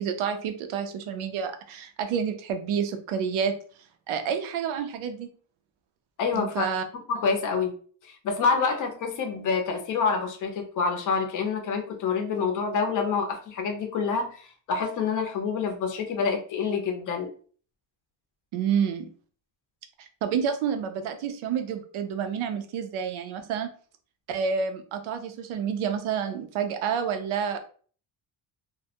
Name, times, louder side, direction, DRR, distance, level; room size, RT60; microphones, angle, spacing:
voice 1, 0.0-3.5 4.1-5.3 6.3-6.8 18.5-19.1 20.0-23.7 24.3-27.6, right 7 dB, 80° right, 7 dB, 0.6 m, -29 dB
voice 2, 6.2-6.7 7.1-7.7 8.2-14.3 14.7-17.3, left 5 dB, 40° left, 4 dB, 0.5 m, -27 dB
2.2 x 2.1 x 2.7 m, 0.43 s
cardioid pair, 145°, 48 cm